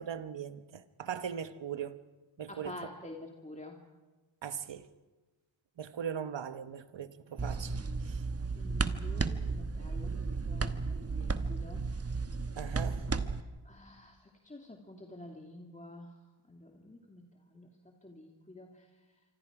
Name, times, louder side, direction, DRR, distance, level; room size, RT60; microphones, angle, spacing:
voice 1, 0.0-2.0 2.4-2.8 4.4-4.9 5.8-7.7 8.0-8.2 12.6-13.0, right 8 dB, 70° right, 1.2 m, -39 dB
voice 2, 2.5-3.8 8.5-10.8 11.1-12.2 13.6-16.2 16.5-17.7 18.0-18.9, left 1 dB, 15° left, 2.3 m, -49 dB
sound 1, 7.4-13.4, right 4 dB, 30° right, 1.1 m, -34 dB
27.0 x 25.0 x 4.9 m
cardioid pair, 65°, 46 cm